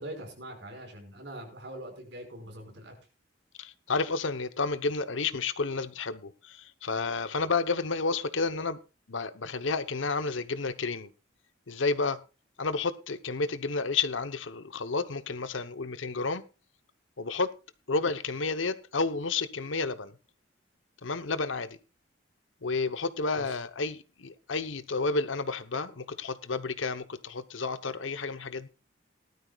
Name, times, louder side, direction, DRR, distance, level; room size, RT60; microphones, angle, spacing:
voice 1, 0.0-3.0 23.4-23.6, right 1 dB, 70° right, 5.3 m, -43 dB
voice 2, 3.6-8.8 9.1-11.1 11.7-12.2 12.6-16.4 17.2-17.5 17.9-20.1 21.0-21.8 22.6-28.7, left 4 dB, 85° left, 0.9 m, -31 dB
18.5 x 12.5 x 2.4 m
head